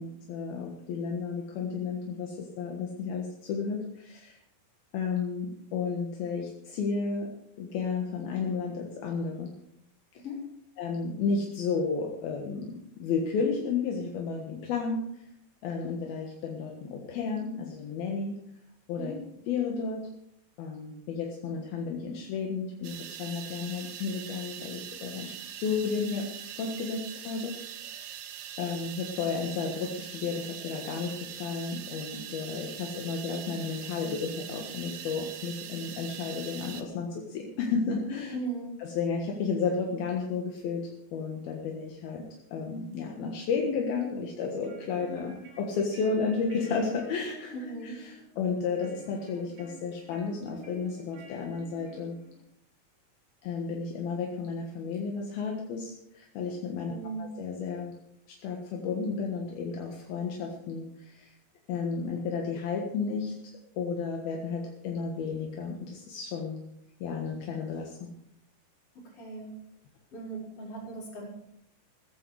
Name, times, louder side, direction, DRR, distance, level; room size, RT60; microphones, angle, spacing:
voice 1, 0.0-4.4 4.9-9.5 10.1-10.2 10.8-15.2 15.6-18.4 18.9-19.1 19.5-20.1 20.6-26.3 26.5-28.0 28.6-38.4 38.8-42.2 42.5-52.2 53.4-57.9 58.3-61.3 61.7-63.3 63.8-66.6 67.0-68.1, left 5 dB, 75° left, 1 dB, 3.4 m, -32 dB
sound 1, 22.8-36.8, right 9 dB, 85° right, 3.3 m, -42 dB
voice 2, 38.3-38.8 47.5-48.0 56.9-57.3 69.2-69.5 70.1-71.3, right 3 dB, 35° left, -2 dB, 5.6 m, -38 dB
sound 2, 44.4-52.4, equal, 35° right, 3.5 m, -49 dB
15.0 x 14.5 x 4.8 m, 0.75 s
omnidirectional pair, 4.5 m